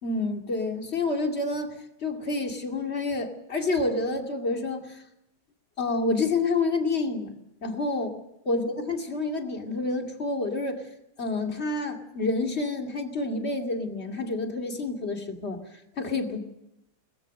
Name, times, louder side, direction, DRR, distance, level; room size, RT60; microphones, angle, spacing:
voice 1, 0.0-5.0 5.8-7.3 7.6-8.1 8.5-10.8 11.2-16.4, left 3 dB, 35° left, 3 dB, 2.6 m, -28 dB
23.0 x 20.0 x 6.5 m, 0.84 s
omnidirectional pair, 1.9 m